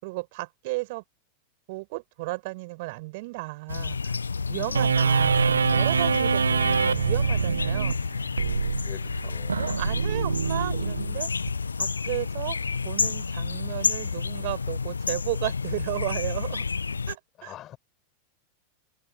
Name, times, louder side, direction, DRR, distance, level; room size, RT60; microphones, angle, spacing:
voice 1, 0.0-1.0 1.7-4.2 4.5-8.0 9.5-11.3 11.8-12.6 12.8-16.6 17.1-17.5, right 24 dB, 50° right, 5.9 m, -34 dB
Ambience Outside the House (Birds Chirping etc.), 3.7-17.1, left 5 dB, 75° left, 1.0 m, -30 dB
voice 2, 4.6-5.0 8.8-9.6 17.4-17.8, left 12 dB, 30° left, 4.9 m, -45 dB
sound 1, 4.7-11.5, right 6 dB, 75° right, 0.4 m, -25 dB
figure-of-eight pair, 90°, 0 cm